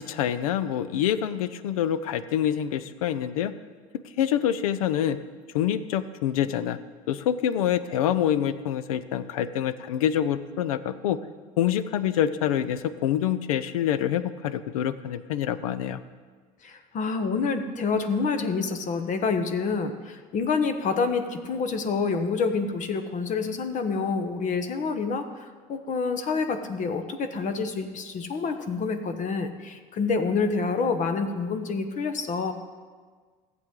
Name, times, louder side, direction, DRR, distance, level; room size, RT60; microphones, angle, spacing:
voice 1, 0.0-3.5 4.2-5.2 5.5-6.8 7.1-11.2 11.6-16.0, left 10 dB, 90° left, 14 dB, 0.5 m, -26 dB
voice 2, 16.6-32.5, left 4 dB, 45° left, 7 dB, 1.0 m, -27 dB
14.5 x 7.7 x 3.7 m, 1.5 s
hypercardioid pair, 85°, 18 cm